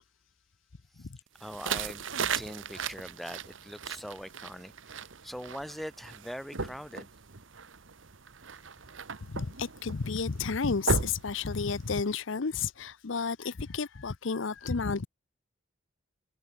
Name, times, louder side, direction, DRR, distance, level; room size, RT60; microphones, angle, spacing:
voice 1, 1.4-2.1 2.3-7.1, equal, ahead, 1.9 m, -42 dB
sound 1, 1.4-12.1, right 5 dB, 70° right, 1.2 m, -37 dB
voice 2, 9.3-15.1, left 5 dB, 65° left, 0.7 m, -32 dB
head